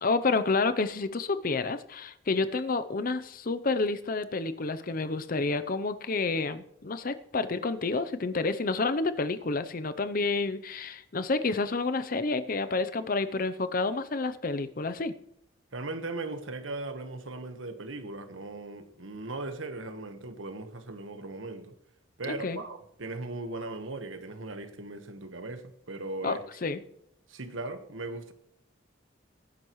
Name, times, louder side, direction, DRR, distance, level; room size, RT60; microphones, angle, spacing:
voice 1, 0.0-15.1 22.2-22.6 26.2-26.8, left 3 dB, 45° left, 0.6 m, -29 dB
voice 2, 15.7-21.7 22.2-26.4 27.3-28.3, right 2 dB, 85° right, 1.3 m, -38 dB
18.0 x 10.5 x 3.1 m
head